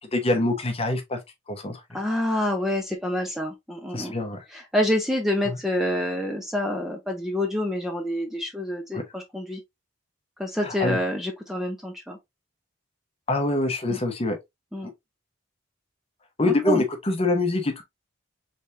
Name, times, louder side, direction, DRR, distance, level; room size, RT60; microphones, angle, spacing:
voice 1, 0.1-1.2 1.5-1.8 3.9-4.4 5.5-5.6 8.9-9.0 10.6-11.0 13.3-14.4 14.8-14.9 16.4-17.8, left 2 dB, 30° left, 0.9 m, -25 dB
voice 2, 1.9-4.1 4.5-9.6 10.4-12.2 13.9-14.0 14.7-14.9 16.4-16.8, left 1 dB, ahead, 0.7 m, -27 dB
4.1 x 3.3 x 2.9 m
head